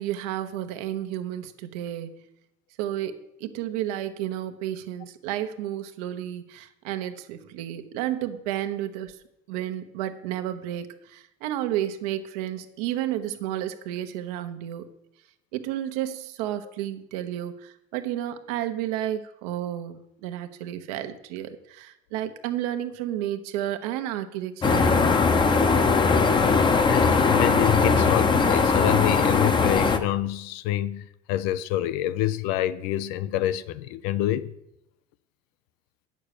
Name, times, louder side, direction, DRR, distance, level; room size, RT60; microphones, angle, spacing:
voice 1, 0.0-2.2 2.8-9.2 9.5-14.9 15.5-25.1, right 12 dB, 80° right, 1.0 m, -32 dB
sound 1, 24.6-30.0, left 4 dB, 25° left, 0.8 m, -20 dB
voice 2, 26.8-34.5, left 13 dB, 80° left, 0.6 m, -27 dB
8.7 x 6.6 x 6.6 m
supercardioid pair, 110°, 19 cm